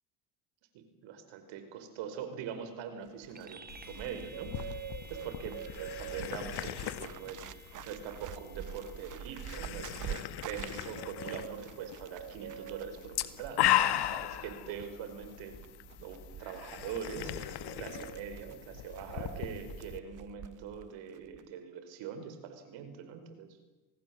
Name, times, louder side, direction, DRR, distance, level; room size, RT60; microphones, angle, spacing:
voice 1, 0.7-3.6 3.9-4.6 5.1-15.5 16.0-23.6, right 7 dB, 70° right, 8 dB, 5.1 m, -43 dB
Bird, 3.1-20.9 21.1-21.5, right 11 dB, 40° right, 0.9 m, -46 dB
sound 1, 3.3-13.2, right 3 dB, 20° right, 2.3 m, -56 dB
sound 2, 3.7-20.0, left 13 dB, 55° left, 1.7 m, -37 dB
27.0 x 18.5 x 7.8 m, 1.1 s
supercardioid pair, 90°, 47 cm